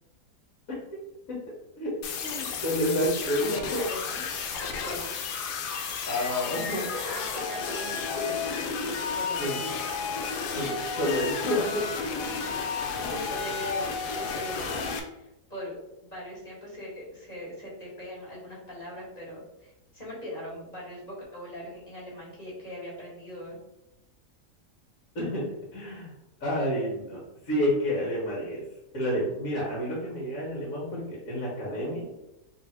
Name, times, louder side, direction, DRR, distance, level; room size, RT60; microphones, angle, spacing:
sound 1, 2.0-15.0, left 5 dB, 80° left, 1.2 m, -32 dB
voice 1, 2.2-3.8 6.1-6.9 9.4-9.6 10.5-11.8 25.1-26.1 26.4-28.6 28.9-32.1, equal, 60° left, -6 dB, 1.5 m, -29 dB
voice 2, 3.4-4.2 4.8-5.2 7.0-8.7 9.1-9.9 13.0-15.7 16.0-23.6, left 1 dB, 25° left, -6 dB, 1.6 m, -40 dB
3.6 x 2.8 x 4.3 m, 0.91 s
omnidirectional pair, 1.7 m